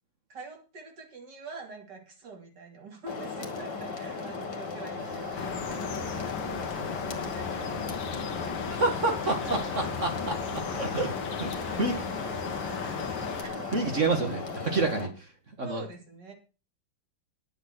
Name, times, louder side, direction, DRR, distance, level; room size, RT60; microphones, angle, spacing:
voice 1, 0.3-10.4 11.5-13.8 15.6-16.3, right 3 dB, 65° right, 2 dB, 3.6 m, -46 dB
sound 1, 3.1-15.1, left 4 dB, 65° left, 2.7 m, -37 dB
sound 2, 5.0-14.0, equal, 10° right, 5.1 m, -46 dB
sound 3, 5.4-13.5, left 7 dB, 90° left, 1.8 m, -36 dB
voice 2, 8.7-10.4 10.7-11.5 11.8-12.0 13.7-15.3 15.6-15.8, right 3 dB, 40° right, 4 dB, 2.1 m, -28 dB
10.5 x 7.9 x 6.1 m, 0.34 s
omnidirectional pair, 2.0 m